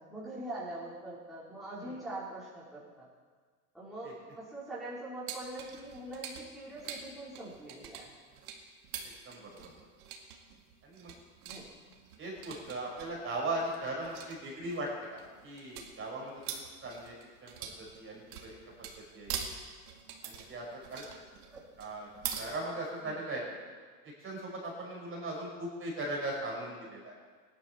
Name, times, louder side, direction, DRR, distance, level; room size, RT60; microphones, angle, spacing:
voice 1, 0.0-3.1 3.7-8.1 11.4-11.7 21.5-21.7 23.0-23.3, right 1 dB, ahead, -10 dB, 4.4 m, -43 dB
sound 1, 5.3-22.4, right 8 dB, 70° right, 2.1 m, -44 dB
voice 2, 12.2-17.1 17.4-18.6 19.1-19.3 20.2-21.0 21.8-22.1 22.3-23.5 24.2-27.1, right 1 dB, 25° right, -3 dB, 5.0 m, -38 dB
17.0 x 11.0 x 4.5 m, 1.5 s
hypercardioid pair, 100°, 46 cm